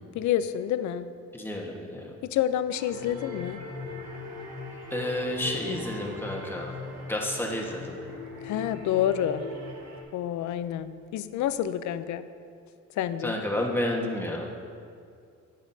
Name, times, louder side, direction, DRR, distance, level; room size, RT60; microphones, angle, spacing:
voice 1, 0.1-1.1 2.2-3.6 8.4-9.4 10.1-12.3 12.9-13.4, left 10 dB, 70° left, 13 dB, 0.5 m, -28 dB
voice 2, 1.3-2.1 4.9-6.7 7.1-7.9 13.2-14.5, left 1 dB, 5° left, -1 dB, 1.3 m, -30 dB
sound 1, 2.7-10.0, right 1 dB, 60° right, 1.6 m, -44 dB
sound 2, 2.9-9.8, left 4 dB, 90° left, 1.0 m, -41 dB
9.8 x 9.3 x 2.7 m, 2.3 s
cardioid pair, 90°, 30 cm